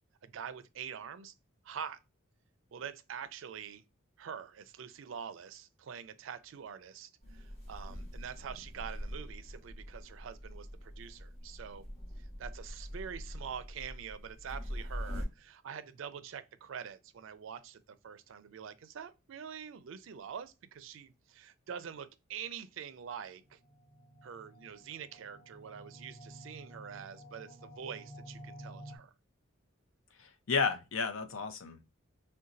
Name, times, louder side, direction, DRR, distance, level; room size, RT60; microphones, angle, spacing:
voice 1, 0.2-1.3 1.6-2.0 2.7-3.8 4.2-11.8 12.2-23.6 24.2-29.1, right 7 dB, 70° right, 0.4 m, -45 dB
sound 1, 7.2-15.3, equal, 25° left, 1.4 m, -43 dB
sound 2, 23.3-29.0, right 1 dB, ahead, 0.9 m, -52 dB
voice 2, 30.2-31.9, left 5 dB, 80° left, 0.6 m, -33 dB
3.9 x 2.2 x 2.5 m
head